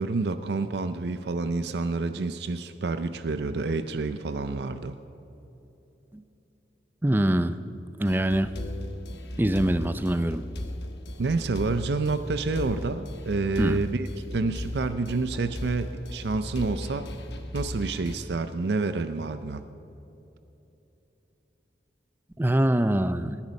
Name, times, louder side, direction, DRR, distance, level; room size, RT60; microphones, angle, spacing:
voice 1, 0.0-5.0 11.2-17.1 17.5-19.7, right 3 dB, 65° right, 11 dB, 0.5 m, -28 dB
voice 2, 7.0-7.5 8.0-8.5 9.4-10.4 13.6-13.8 22.4-23.4, right 1 dB, 10° right, 12 dB, 0.4 m, -24 dB
sound 1, 8.1-18.2, left 1 dB, 65° left, 1.0 m, -37 dB
19.5 x 10.5 x 5.3 m, 2.9 s
head